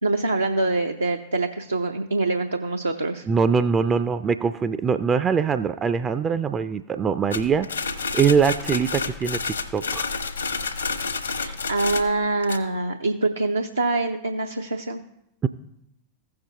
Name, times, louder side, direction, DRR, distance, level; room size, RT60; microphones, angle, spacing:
voice 1, 0.0-3.3 11.4-15.0, right 2 dB, 80° right, 4 dB, 0.6 m, -25 dB
voice 2, 3.3-9.4 9.7-10.1 15.4-15.5, right 6 dB, 20° right, 10 dB, 0.4 m, -22 dB
sound 1, 7.3-12.6, left 4 dB, 75° left, 1.0 m, -29 dB
16.0 x 6.7 x 2.8 m, 0.79 s
figure-of-eight pair, 90°, 0 cm